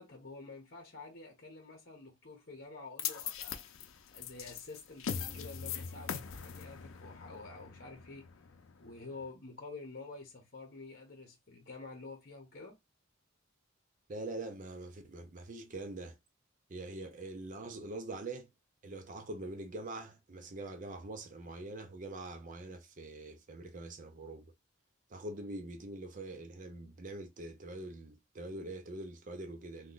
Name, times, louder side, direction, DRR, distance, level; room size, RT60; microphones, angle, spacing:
voice 1, 0.0-3.6 4.1-8.3 8.8-12.7, left 3 dB, 50° left, 0.9 m, -49 dB
sound 1, 3.0-9.3, left 7 dB, 85° left, 0.5 m, -41 dB
voice 2, 14.1-16.2 16.7-18.5 18.8-24.5 25.1-29.9, right 2 dB, 40° right, 0.5 m, -44 dB
2.9 x 2.3 x 3.8 m
head